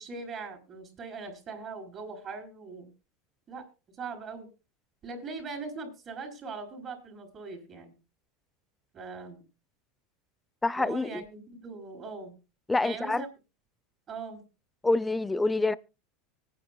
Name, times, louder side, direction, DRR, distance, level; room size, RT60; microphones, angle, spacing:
voice 1, 0.0-2.9 3.5-3.7 4.0-4.5 5.0-7.9 8.9-9.4 10.8-12.4 12.8-13.3 14.1-14.4, right 4 dB, 35° right, 4.7 m, -40 dB
voice 2, 10.6-11.2 12.7-13.2 14.8-15.7, left 2 dB, 10° left, 0.6 m, -26 dB
24.5 x 9.5 x 2.2 m
supercardioid pair, 115°, 0 cm